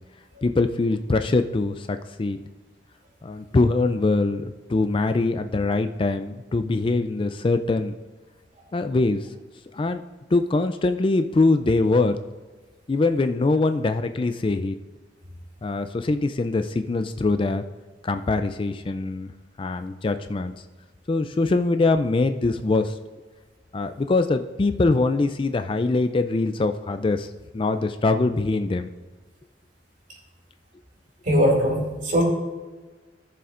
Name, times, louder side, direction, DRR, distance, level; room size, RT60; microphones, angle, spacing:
voice 1, 0.4-2.4 3.2-7.9 8.7-9.3 9.7-10.0 10.3-12.2 12.9-14.8 15.6-17.6 18.0-19.3 19.6-20.5 21.1-22.9 23.7-28.9, left 3 dB, 30° left, 9 dB, 0.3 m, -23 dB
voice 2, 31.3-32.2, equal, 45° right, 0 dB, 2.5 m, -20 dB
17.0 x 6.9 x 2.5 m, 1.3 s
head